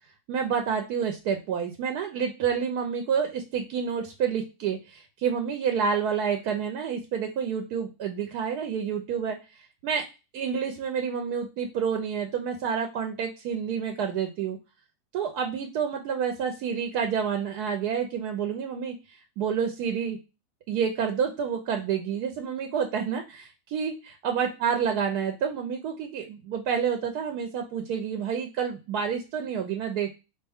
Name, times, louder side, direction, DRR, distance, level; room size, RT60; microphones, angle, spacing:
voice 1, 0.3-9.4 9.8-10.0 10.3-14.6 15.1-20.2 20.7-30.1, right 7 dB, 85° right, 5 dB, 1.2 m, -29 dB
4.4 x 2.9 x 3.4 m, 0.28 s
omnidirectional pair, 1.6 m